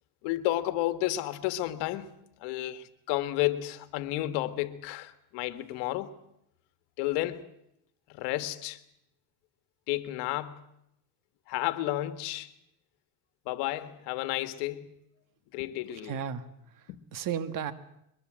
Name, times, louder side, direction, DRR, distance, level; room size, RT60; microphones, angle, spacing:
voice 1, 0.2-2.1 2.4-6.1 7.0-7.5 8.1-8.8 9.9-10.7 11.5-12.5 13.5-14.9 15.5-16.2 16.9-17.0, left 15 dB, 75° left, 1.7 m, -32 dB
voice 2, 16.0-17.7, right 8 dB, 50° right, 1.7 m, -35 dB
23.0 x 22.5 x 7.6 m
cardioid pair, 135°, 42 cm